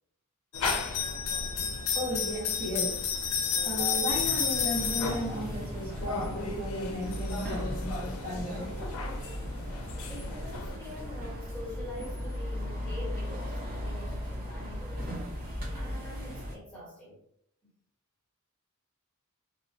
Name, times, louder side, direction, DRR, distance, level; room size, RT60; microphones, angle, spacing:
sound 1, 0.5-10.8, left 6 dB, 75° left, 0.4 m, -32 dB
voice 1, 1.9-3.3 3.6-8.8, equal, 60° right, -3 dB, 1.1 m, -35 dB
sound 2, 4.1-16.6, equal, 40° right, 0.7 m, -37 dB
voice 2, 10.0-15.1 15.7-17.2 17.6-17.7, left 1 dB, 5° left, -8 dB, 1.0 m, -45 dB
2.9 x 2.0 x 2.6 m, 0.69 s
head